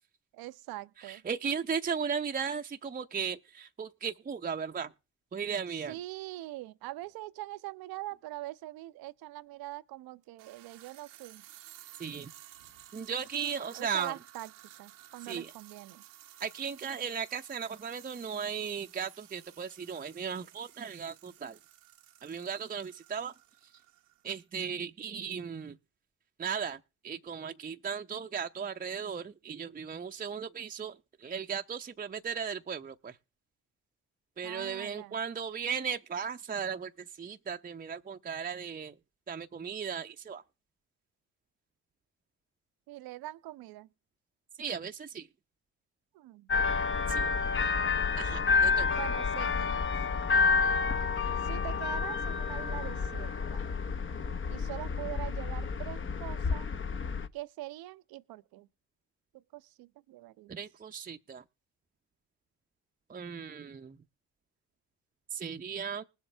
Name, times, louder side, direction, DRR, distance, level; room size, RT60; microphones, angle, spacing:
voice 1, 0.3-1.2 5.7-11.4 13.5-14.5 14.8-16.0 34.4-35.2 42.9-43.9 46.1-46.5 48.9-49.9 51.4-53.6 54.5-56.7 57.3-58.7 59.3-60.6, right 16 dB, 70° right, 0.7 m, -43 dB
voice 2, 1.0-4.9 5.3-5.9 12.0-12.3 12.9-14.1 15.2-15.5 16.4-21.6 22.2-23.3 24.2-25.8 26.4-33.2 34.4-38.9 39.3-40.4 44.6-45.3 47.1-47.3 47.6-47.7 48.2-48.9 60.5-61.4 63.1-64.0 65.3-66.0, right 7 dB, 25° right, 0.7 m, -36 dB
sound 1, 7.0-7.1 8.1-8.2 10.2-24.3, right 13 dB, 85° right, 1.1 m, -54 dB
sound 2, 46.5-57.3, left 5 dB, 30° left, 0.8 m, -29 dB
20.5 x 7.4 x 3.3 m
hypercardioid pair, 55°, 38 cm